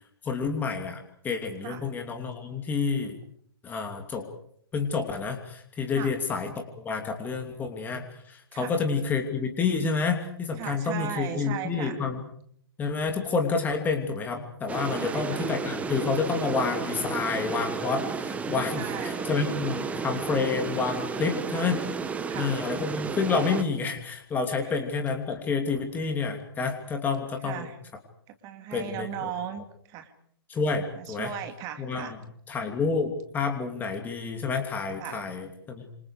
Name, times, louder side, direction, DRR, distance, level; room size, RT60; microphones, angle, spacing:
voice 1, 0.2-3.2 3.6-4.2 4.7-12.2 12.8-21.8 22.3-27.7 28.7-29.3 30.5-31.3 31.8-32.2 32.5-35.8, left 4 dB, 15° left, 4 dB, 2.9 m, -29 dB
voice 2, 10.6-12.0 14.9-15.5 18.7-19.3 21.2-21.7 22.3-22.5 24.6-24.8 27.4-27.8 28.4-30.1 31.0-32.2 35.0-35.2, right 10 dB, 25° right, 7 dB, 2.7 m, -37 dB
sound 1, 14.7-23.6, right 5 dB, 10° right, 1.5 m, -32 dB
28.0 x 26.5 x 5.0 m, 0.66 s
figure-of-eight pair, 130°, 14 cm